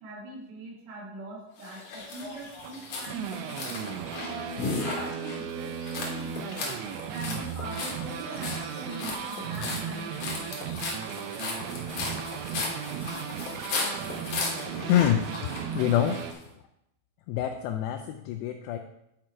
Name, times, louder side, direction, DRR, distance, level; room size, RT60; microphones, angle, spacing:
voice 1, 0.0-3.6 4.1-6.7 7.1-10.7, right 2 dB, 65° right, -3 dB, 4.2 m, -42 dB
sound 1, 1.6-16.4, left 3 dB, 60° left, 2.0 m, -36 dB
sound 2, 2.6-16.3, right 8 dB, 80° right, 2.9 m, -36 dB
voice 2, 14.9-15.3 15.8-16.2 17.3-18.8, left 11 dB, 85° left, 5 dB, 2.4 m, -25 dB
10.5 x 4.9 x 4.5 m, 0.83 s
omnidirectional pair, 5.4 m